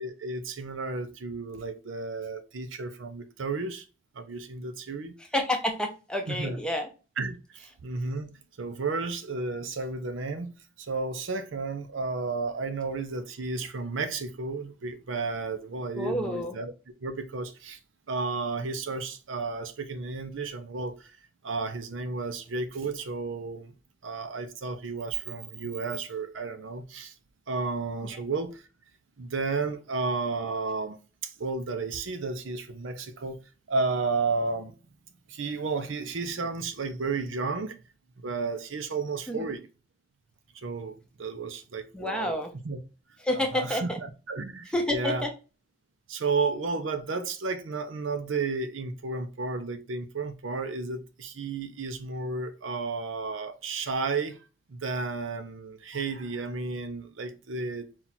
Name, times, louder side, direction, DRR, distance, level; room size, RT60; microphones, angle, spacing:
voice 1, 0.0-3.8 4.1-5.2 6.3-6.6 7.2-8.3 8.6-16.7 17.0-17.8 18.1-21.1 21.4-23.7 24.0-27.1 27.5-28.6 29.2-33.4 33.7-34.7 35.3-37.8 38.2-39.7 40.6-42.4 42.6-42.8 43.3-43.9 44.3-45.3 46.1-54.4 54.7-57.9, right 4 dB, 85° right, 0.6 m, -32 dB
voice 2, 5.3-6.9 15.9-16.5 28.1-28.2 39.3-39.5 41.9-42.5 43.2-44.0 44.7-45.3, left 1 dB, 5° left, 0.6 m, -29 dB
4.2 x 2.4 x 4.1 m
head